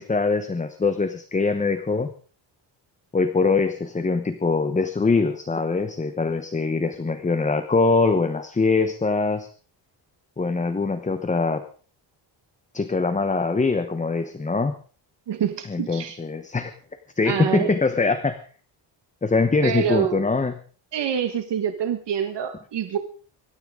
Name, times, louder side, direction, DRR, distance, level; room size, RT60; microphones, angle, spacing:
voice 1, 0.0-2.1 3.1-9.5 10.4-11.6 12.7-14.7 15.7-16.7 17.2-18.4 19.2-20.5, left 4 dB, 15° left, 9 dB, 1.0 m, -23 dB
voice 2, 15.3-16.2 17.2-17.7 19.6-20.2 20.9-23.0, right 8 dB, 60° right, 6 dB, 1.6 m, -26 dB
24.5 x 13.5 x 3.8 m, 0.42 s
cardioid pair, 155°, 46 cm